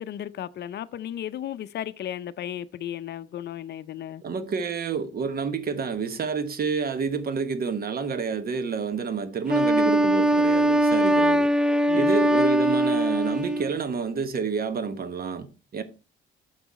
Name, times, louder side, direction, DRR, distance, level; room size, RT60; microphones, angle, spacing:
voice 1, 0.0-4.2 11.9-12.1, left 11 dB, 60° left, 0.5 m, -35 dB
voice 2, 4.2-11.5 11.9-15.8, right 5 dB, 50° right, 1.1 m, -29 dB
Wind instrument woodwind instrument, 9.5-13.8, right 1 dB, 5° right, 0.4 m, -21 dB
6.9 x 5.9 x 4.1 m
cardioid pair, 90°, 20 cm